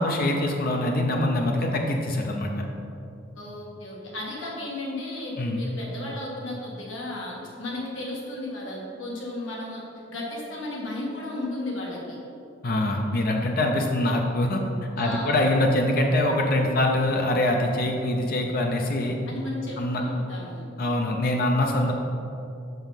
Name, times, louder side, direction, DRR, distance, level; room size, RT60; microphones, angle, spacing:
voice 1, 0.0-2.6 5.4-5.6 12.6-14.6 15.0-19.2 19.8-20.0 20.8-21.9, left 1 dB, 50° left, 1 dB, 0.7 m, -24 dB
voice 2, 3.4-9.8 10.1-12.2 15.0-15.5 19.3-20.7 21.8-21.9, left 2 dB, 85° left, -3 dB, 1.7 m, -34 dB
6.0 x 5.5 x 5.7 m, 2.7 s
head